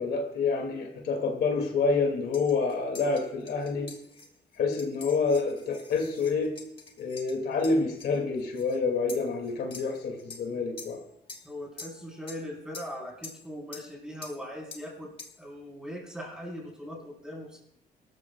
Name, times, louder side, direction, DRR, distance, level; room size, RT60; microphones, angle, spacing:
voice 1, 0.0-3.9 4.6-6.6 7.0-11.0, left 4 dB, 75° left, 3 dB, 2.5 m, -28 dB
sound 1, 2.3-8.8 9.1-10.4 10.8-11.0 11.3-11.5 11.8-12.4 12.7-12.9 13.2-13.5 13.7-13.9 14.2-14.4 14.7-14.9 15.2-15.4, left 4 dB, 35° left, 2.1 m, -46 dB
voice 2, 11.4-15.1 15.4-17.6, equal, 5° right, -2 dB, 4.7 m, -40 dB
23.0 x 13.5 x 2.4 m, 0.77 s
cardioid pair, 125°, 17 cm